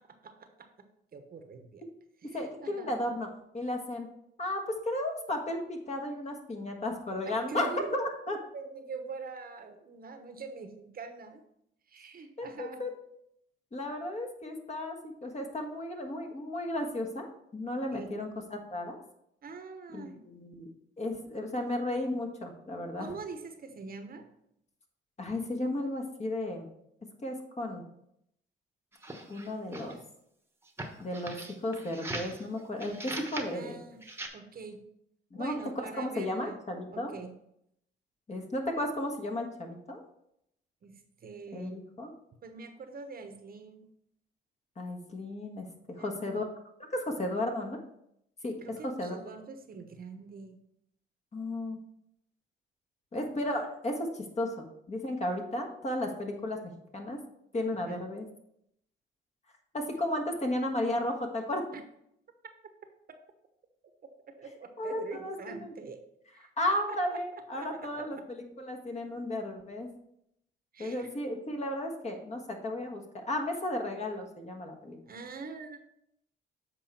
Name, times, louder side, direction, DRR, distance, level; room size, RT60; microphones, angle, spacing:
voice 1, 0.2-0.7 1.1-1.8 2.2-2.9 7.3-8.0 8.5-11.4 11.9-12.8 17.9-18.2 19.4-20.2 23.0-24.2 33.5-34.0 34.3-34.8 35.3-36.6 36.9-37.4 40.8-41.8 42.4-43.9 46.0-46.4 48.6-50.6 57.7-58.0 61.7-61.8 64.4-66.0 66.3-67.2 67.5-68.3 70.7-71.1 75.1-75.8, right 4 dB, 50° right, 7 dB, 1.0 m, -44 dB
voice 2, 2.3-3.3 3.5-4.1 4.4-8.4 12.4-12.9 13.7-19.0 19.9-20.7 21.0-23.1 25.2-26.7 27.2-27.8 29.3-30.0 31.0-33.8 35.3-35.5 36.0-37.1 38.3-40.0 41.5-42.1 44.8-46.5 46.9-47.8 48.4-48.6 48.8-49.2 51.3-51.8 53.1-56.6 56.9-57.2 57.5-58.2 59.7-61.6 64.8-65.7 66.6-69.9 70.8-75.0, left 1 dB, 35° left, 3 dB, 1.5 m, -34 dB
sound 1, 28.9-30.0 30.7-32.4 32.8-33.5 34.0-34.3, right 2 dB, 10° right, 1.1 m, -40 dB
7.7 x 4.8 x 4.3 m, 0.76 s
cardioid pair, 90°, 20 cm